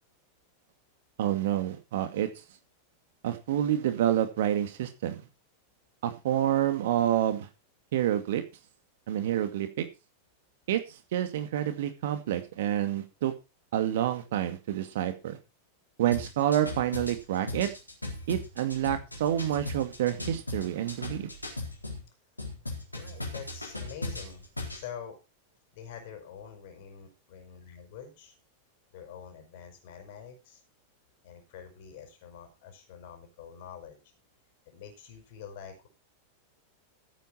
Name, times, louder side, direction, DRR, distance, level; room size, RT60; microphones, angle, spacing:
voice 1, 1.2-2.3 3.2-5.2 6.0-7.5 7.9-8.4 9.1-9.9 10.7-13.3 13.7-15.4 16.0-17.7 18.3-21.3, right 11 dB, 55° right, 8 dB, 2.2 m, -28 dB
sound 1, 16.1-22.0 22.4-24.8, left 2 dB, 85° left, 4.1 m, -37 dB
voice 2, 23.0-25.2 25.7-28.4 28.9-30.6 31.2-34.0 34.7-35.9, left 8 dB, 50° left, 5 dB, 5.3 m, -46 dB
14.5 x 9.3 x 4.4 m, 0.28 s
figure-of-eight pair, 90°, 0 cm